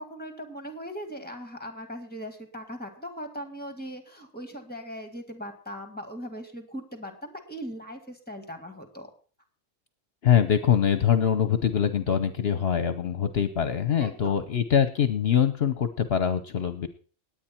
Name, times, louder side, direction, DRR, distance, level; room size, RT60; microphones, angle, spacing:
voice 1, 0.0-9.1 14.0-14.4, equal, 5° left, 6 dB, 1.9 m, -39 dB
voice 2, 10.2-16.9, left 8 dB, 55° left, 11 dB, 1.0 m, -23 dB
19.0 x 9.0 x 4.4 m, 0.42 s
omnidirectional pair, 1.3 m